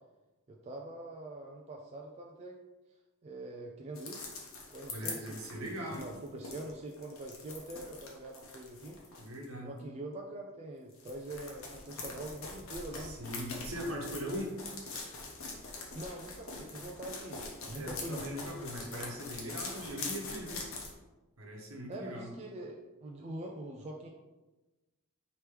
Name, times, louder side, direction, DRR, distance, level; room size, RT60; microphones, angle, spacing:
voice 1, 0.5-2.6 3.2-4.2 4.7-9.0 9.6-13.2 15.9-18.3 21.9-24.1, right 1 dB, 30° right, 0 dB, 0.3 m, -44 dB
sound 1, 3.9-9.4 10.9-20.9, left 3 dB, 65° left, 0.9 m, -43 dB
voice 2, 4.9-6.1 9.2-9.7 13.0-14.5 17.7-20.6 21.4-22.3, equal, 70° right, -1 dB, 1.0 m, -40 dB
4.6 x 3.0 x 3.3 m, 1.1 s
head